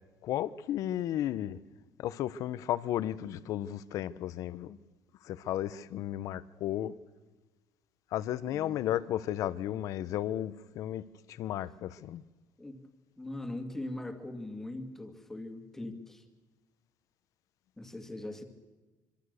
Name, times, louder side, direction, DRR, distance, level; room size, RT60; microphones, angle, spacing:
voice 1, 0.2-1.6 2.0-4.8 5.2-6.9 8.1-12.2, left 12 dB, 55° left, 1.0 m, -34 dB
voice 2, 13.2-16.2 17.8-18.4, left 1 dB, 5° left, 2.2 m, -41 dB
25.5 x 25.0 x 6.7 m
cardioid pair, 180°, 7 cm